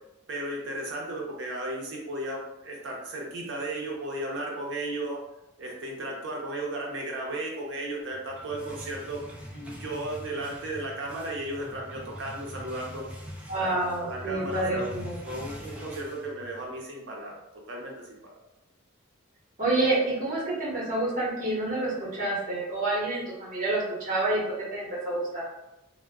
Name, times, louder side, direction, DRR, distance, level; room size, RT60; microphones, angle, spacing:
voice 1, 0.3-5.2 5.6-13.0 13.5-14.9 15.2-17.4 17.7-18.4, right 1 dB, 60° right, -2 dB, 0.6 m, -35 dB
sound 1, 8.1-16.8, equal, 5° right, 0.3 m, -43 dB
voice 2, 13.5-15.2 19.6-24.4 24.7-25.4, right 2 dB, 40° right, -5 dB, 0.9 m, -28 dB
2.1 x 2.1 x 3.4 m, 0.92 s
head